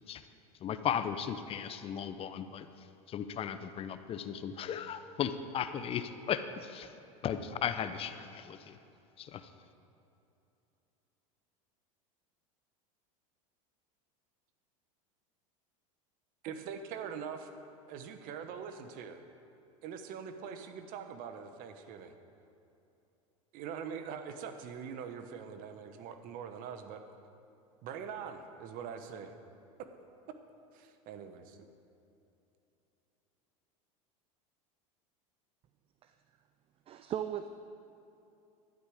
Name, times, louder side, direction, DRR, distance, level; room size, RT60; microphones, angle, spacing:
voice 1, 0.6-2.7 3.1-6.9 7.2-8.8 9.2-9.5, left 8 dB, 35° left, 11 dB, 0.6 m, -36 dB
voice 2, 16.4-17.5 17.9-19.2 19.8-22.1 23.5-27.0 27.8-29.3 30.7-31.6, right 7 dB, 55° right, 8 dB, 1.1 m, -43 dB
voice 3, 36.9-37.5, right 10 dB, 35° right, 9 dB, 0.5 m, -37 dB
12.0 x 10.0 x 4.9 m, 2.8 s
supercardioid pair, 110°, 17 cm